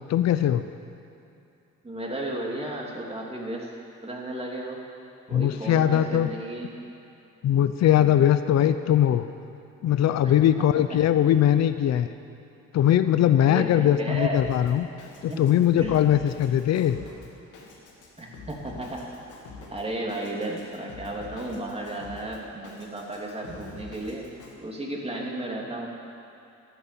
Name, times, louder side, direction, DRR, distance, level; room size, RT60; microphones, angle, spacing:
voice 1, 0.1-0.6 5.3-6.3 7.4-9.3 9.8-12.1 12.7-14.9 15.2-17.0, left 11 dB, 60° left, 10 dB, 0.7 m, -21 dB
voice 2, 1.8-3.7 4.0-4.8 5.3-6.8 10.2-10.3 10.6-11.0 13.4-14.4 15.3-15.4 15.8-15.9 18.2-19.1 19.7-24.3 24.6-25.9, right 1 dB, 20° right, -2 dB, 3.2 m, -34 dB
Drum kit, 14.3-24.6, left 3 dB, 90° left, 2.6 m, -46 dB
13.0 x 11.5 x 8.5 m, 2.7 s
cardioid pair, 90°, 30 cm